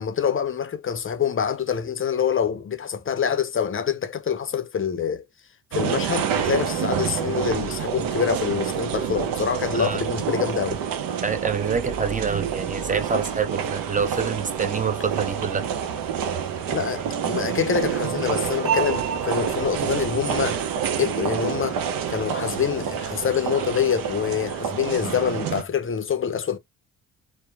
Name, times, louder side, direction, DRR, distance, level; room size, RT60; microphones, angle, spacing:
voice 1, 0.0-5.2 5.7-10.8 16.7-20.6 21.0-21.8 22.1-26.6, left 7 dB, 35° left, 0.6 m, -26 dB
sound 1, 5.7-25.6, right 8 dB, 65° right, 0.7 m, -27 dB
voice 2, 11.2-15.6, right 6 dB, 20° right, 0.7 m, -26 dB
2.8 x 2.1 x 2.3 m
supercardioid pair, 55°, 36 cm